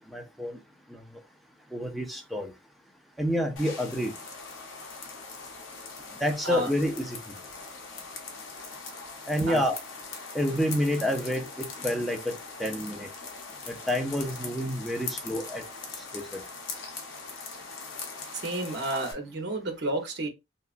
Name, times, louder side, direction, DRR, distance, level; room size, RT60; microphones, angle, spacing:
voice 1, 0.1-0.6 0.9-1.0 1.7-2.5 3.2-4.1 6.2-7.2 9.3-9.7 10.3-12.3 12.6-13.1 13.7-15.6 16.1-16.4, equal, ahead, 0.4 m, -28 dB
sound 1, 3.6-19.1, left 4 dB, 75° left, 0.7 m, -41 dB
voice 2, 18.4-20.3, right 2 dB, 55° right, 0.7 m, -31 dB
2.9 x 2.3 x 2.4 m
head